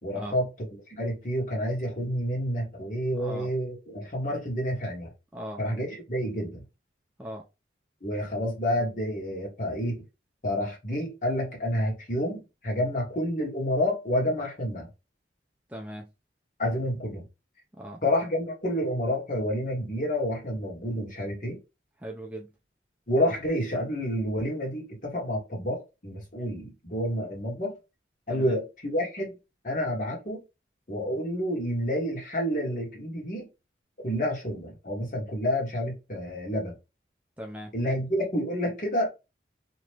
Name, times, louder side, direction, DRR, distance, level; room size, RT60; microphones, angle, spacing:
voice 1, 0.0-5.1 5.6-6.6 8.0-10.0 10.4-14.9 16.6-17.3 18.0-21.6 23.1-27.7 28.3-29.3 29.6-30.4 30.9-33.5 34.0-36.7 37.7-39.1, equal, 45° left, 1.5 m, -29 dB
voice 2, 3.1-3.6 5.3-5.6 7.2-7.4 15.7-16.1 17.8-18.0 22.0-22.5 28.3-28.6 37.4-37.7, equal, 10° right, 0.4 m, -39 dB
2.9 x 2.5 x 3.2 m
head